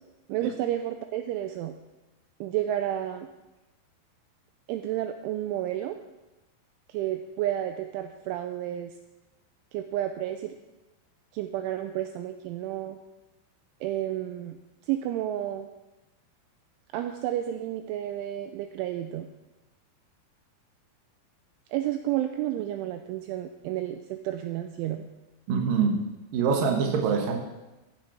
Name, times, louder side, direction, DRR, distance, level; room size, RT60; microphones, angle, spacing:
voice 1, 0.3-1.8 2.4-3.3 4.7-6.0 6.9-8.9 9.7-10.5 11.3-13.0 13.8-14.6 14.9-15.7 16.9-19.3 21.7-25.1, right 12 dB, 85° right, 7 dB, 2.8 m, -31 dB
voice 2, 25.5-26.0 26.3-27.4, right 5 dB, 60° right, 2 dB, 2.4 m, -24 dB
14.5 x 11.0 x 4.9 m, 1.0 s
omnidirectional pair, 6.0 m